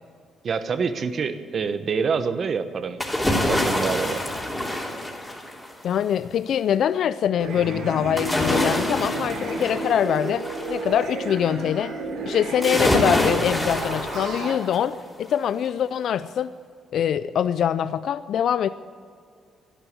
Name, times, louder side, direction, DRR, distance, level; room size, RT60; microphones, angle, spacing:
voice 1, 0.4-3.0 3.2-4.2, right 5 dB, 50° right, 10 dB, 1.2 m, -26 dB
sound 1, 3.0-5.8 8.2-10.8 12.6-14.9 15.3-15.4, left 1 dB, 10° left, 3.3 m, -26 dB
voice 2, 5.8-11.9 12.3-16.5 16.9-18.7, left 9 dB, 70° left, 14 dB, 0.4 m, -24 dB
sound 2, 7.4-14.6, right 3 dB, 75° right, 3.7 m, -32 dB
12.0 x 12.0 x 9.5 m, 2.3 s
cardioid pair, 90°, 0 cm